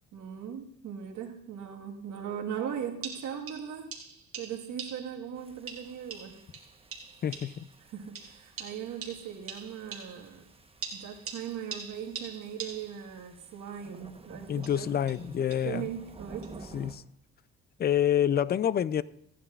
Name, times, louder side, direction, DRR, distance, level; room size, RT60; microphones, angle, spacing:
voice 1, 0.1-3.9 4.3-6.4 7.8-10.4 10.9-14.9 15.6-16.7, right 8 dB, 75° right, 1.6 m, -39 dB
sound 1, 2.5-2.6 3.0-5.3 5.7-7.7 8.1-10.4 10.8-13.1 14.5-15.8 16.4-16.5, right 6 dB, 50° right, 2.2 m, -44 dB
sound 2, 5.4-17.0, right 3 dB, 20° right, 1.0 m, -52 dB
voice 2, 7.2-7.7 14.5-15.9 16.7-17.0 17.8-19.0, left 10 dB, 35° left, 0.4 m, -27 dB
15.0 x 10.0 x 2.4 m
cardioid pair, 90°, 30 cm